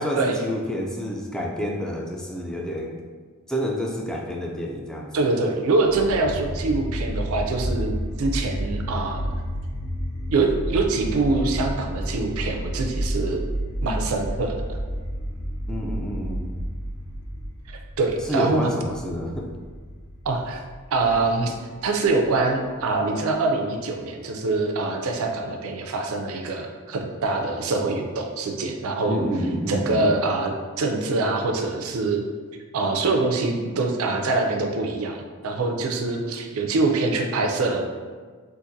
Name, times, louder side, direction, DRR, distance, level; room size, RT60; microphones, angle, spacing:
voice 1, 0.0-3.0 3.5-5.1 15.7-16.5 18.3-19.5 29.1-30.1, equal, 5° left, -1 dB, 0.3 m, -28 dB
voice 2, 5.1-7.9 8.2-9.3 10.3-13.4 13.8-14.8 18.0-18.7 20.3-20.6 20.9-21.6 21.8-29.2 29.7-32.2 32.7-37.8, right 3 dB, 70° right, 2 dB, 0.4 m, -24 dB
sound 1, 5.8-22.9, equal, 80° left, 0.7 m, -31 dB
3.8 x 2.5 x 2.6 m, 1.5 s
head